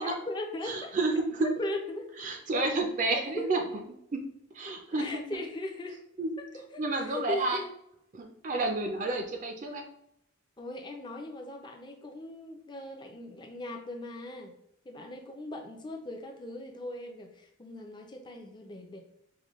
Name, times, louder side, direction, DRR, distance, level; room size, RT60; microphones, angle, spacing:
voice 1, 0.0-0.9 1.4-2.0 3.1-3.5 4.9-6.0 6.5-7.6 10.6-14.5 14.8-19.0, left 1 dB, 20° left, 2 dB, 0.5 m, -39 dB
voice 2, 0.6-1.5 2.2-3.6 4.1-4.2 4.5-5.2 6.2-6.3 6.8-7.6 8.1-9.8, right 2 dB, 40° right, 3 dB, 0.4 m, -30 dB
4.9 x 2.2 x 3.0 m, 0.75 s
head